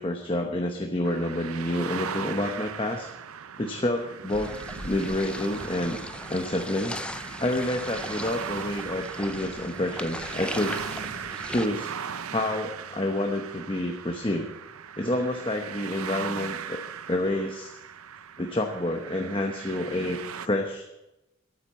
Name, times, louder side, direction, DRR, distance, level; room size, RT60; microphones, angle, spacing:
voice 1, 0.0-3.1 3.6-4.5 4.8-6.0 6.3-7.0 7.4-10.8 11.5-11.9 12.3-14.5 15.0-16.8 17.1-17.8 18.4-20.9, left 1 dB, 25° left, 3 dB, 0.9 m, -28 dB
sound 1, 1.0-20.5, right 7 dB, 90° right, 0.6 m, -38 dB
sound 2, 4.3-11.7, left 1 dB, 5° left, 0.4 m, -38 dB
12.0 x 9.1 x 7.4 m, 0.93 s
head